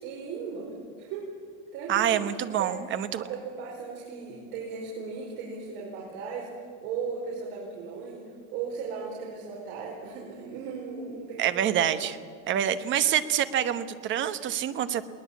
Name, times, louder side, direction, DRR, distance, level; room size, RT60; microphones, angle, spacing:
voice 1, 0.0-0.7 1.0-1.3 1.7-2.8 3.1-6.5 6.8-8.2 8.5-12.1, right 5 dB, 70° right, -3 dB, 5.2 m, -37 dB
voice 2, 1.9-3.2 11.4-12.2 12.5-15.0, right 10 dB, 35° right, 12 dB, 1.1 m, -26 dB
21.0 x 19.0 x 8.4 m, 2.1 s
cardioid pair, 170°, 35 cm